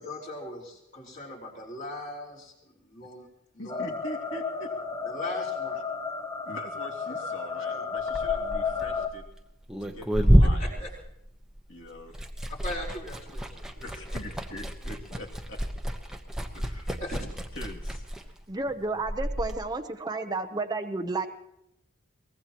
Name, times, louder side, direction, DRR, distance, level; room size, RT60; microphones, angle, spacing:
voice 1, 0.0-3.3 3.5-3.9 5.0-5.8 7.5-7.8 10.4-10.9 12.1-12.3 12.6-14.3 16.9-17.2, left 1 dB, 40° left, -2 dB, 4.4 m, -40 dB
voice 2, 3.6-4.7 6.4-9.2 9.8-10.9 11.7-12.1 13.3-13.4 13.7-15.6 16.5-16.9 17.5-18.1, left 1 dB, 60° left, 0 dB, 2.6 m, -42 dB
sound 1, 3.7-9.1, left 5 dB, 15° left, 0.9 m, -32 dB
Liquid, 8.0-11.7 12.0-19.5, equal, 5° right, 1.1 m, -28 dB
voice 3, 18.5-21.3, right 3 dB, 20° right, 5 dB, 0.8 m, -31 dB
23.5 x 19.5 x 3.0 m, 0.80 s
head